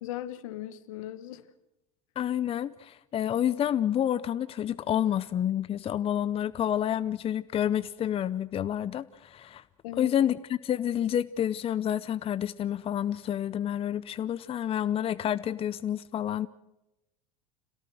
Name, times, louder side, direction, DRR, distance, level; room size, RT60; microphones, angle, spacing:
voice 1, 0.0-1.5 9.8-10.2, left 13 dB, 75° left, 1.5 m, -38 dB
voice 2, 2.2-9.6 10.0-16.5, left 10 dB, 35° left, 0.7 m, -29 dB
27.0 x 17.5 x 6.4 m
hypercardioid pair, 90°, 17 cm